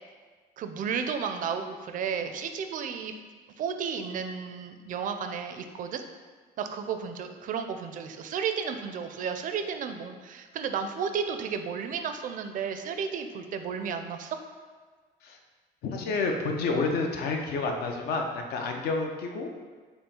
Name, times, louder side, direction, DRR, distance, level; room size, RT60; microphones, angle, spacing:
voice 1, 0.6-3.1 3.6-6.0 6.6-14.4, right 6 dB, 50° right, 7 dB, 0.4 m, -33 dB
voice 2, 15.8-19.5, left 3 dB, 70° left, 3 dB, 0.6 m, -29 dB
5.3 x 2.1 x 4.3 m, 1.5 s
cardioid pair, 110°, 17 cm